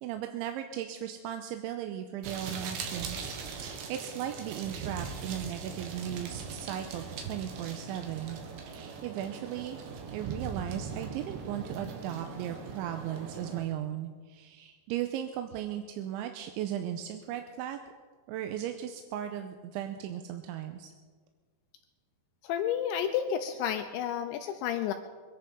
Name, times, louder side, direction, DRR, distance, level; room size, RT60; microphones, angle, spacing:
voice 1, 0.0-8.4 8.6-9.8 10.1-17.8 18.3-20.9, right 11 dB, 85° right, 6 dB, 3.1 m, -37 dB
sound 1, 2.2-13.6, right 5 dB, 70° right, 3.5 m, -40 dB
voice 2, 22.4-24.9, left 9 dB, 80° left, 6 dB, 2.9 m, -31 dB
24.0 x 10.5 x 5.3 m, 1.5 s
omnidirectional pair, 5.3 m